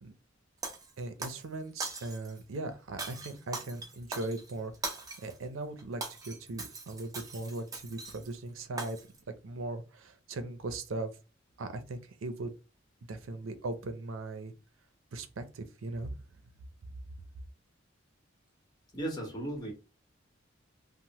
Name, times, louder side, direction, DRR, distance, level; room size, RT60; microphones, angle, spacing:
Shatter, 0.6-1.4 1.8-2.4 3.0-5.4 5.8-8.3 8.8-9.2, right 3 dB, 20° right, 0.4 m, -41 dB
voice 1, 1.0-4.7 5.2-9.0 9.3-11.1 11.6-12.5 13.1-14.5 15.1-16.1, right 2 dB, 85° right, 0.5 m, -39 dB
voice 2, 18.9-19.7, right 1 dB, 20° left, 1.0 m, -36 dB
3.0 x 2.0 x 2.8 m
head